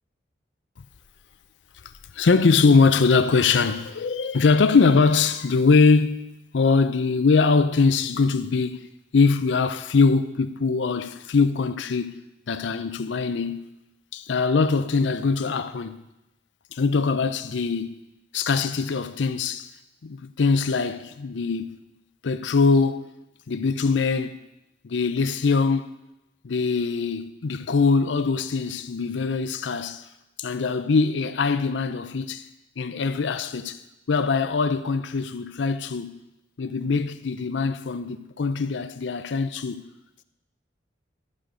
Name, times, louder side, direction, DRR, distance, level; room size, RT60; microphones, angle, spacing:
voice 1, 2.1-6.3 6.5-8.9 9.1-13.6 14.1-16.0 16.7-18.0 18.3-19.7 20.0-21.8 22.2-23.1 23.5-24.4 24.8-25.9 26.4-30.1 30.4-32.4 32.8-33.8 34.1-36.1 36.6-39.8, left 4 dB, 85° left, 0.5 m, -22 dB
12.0 x 6.3 x 5.0 m
head